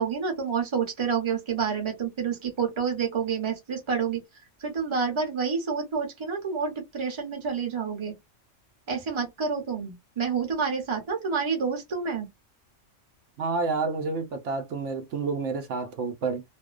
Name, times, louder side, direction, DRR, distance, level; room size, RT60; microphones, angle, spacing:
voice 1, 0.0-4.2 4.6-8.1 8.9-12.3, right 6 dB, 30° right, 0.8 m, -28 dB
voice 2, 13.4-16.4, right 4 dB, 80° right, 1.0 m, -29 dB
2.6 x 2.0 x 2.4 m
omnidirectional pair, 1.2 m